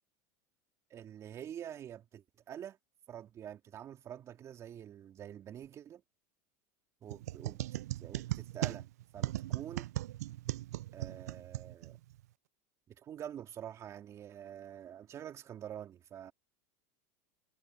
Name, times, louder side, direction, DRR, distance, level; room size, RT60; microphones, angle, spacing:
voice 1, 0.9-2.8 3.1-6.0 7.0-8.9 9.1-9.9 10.9-12.0 12.9-16.3, right 10 dB, 35° right, 3.1 m, -47 dB
sound 1, 7.1-12.2, right 15 dB, 90° right, 0.4 m, -38 dB
supercardioid pair, 120°, 8 cm